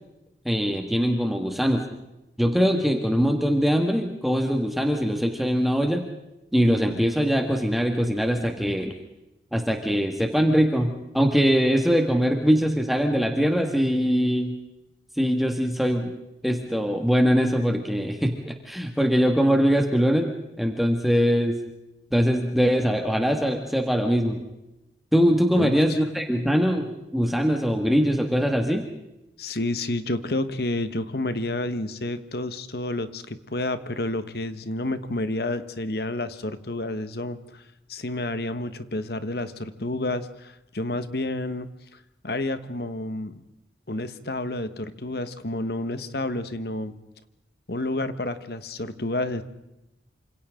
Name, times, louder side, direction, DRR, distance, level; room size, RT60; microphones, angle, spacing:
voice 1, 0.5-1.8 2.4-6.0 6.5-8.9 9.5-14.5 15.2-16.1 16.4-20.3 20.6-21.6 22.1-24.4 25.1-28.8, equal, ahead, 3 dB, 1.9 m, -22 dB
voice 2, 25.5-26.0 29.4-37.6 37.9-43.4 43.9-46.9 47.7-49.4, left 2 dB, 60° left, 11 dB, 1.4 m, -30 dB
28.5 x 26.5 x 3.8 m, 0.91 s
head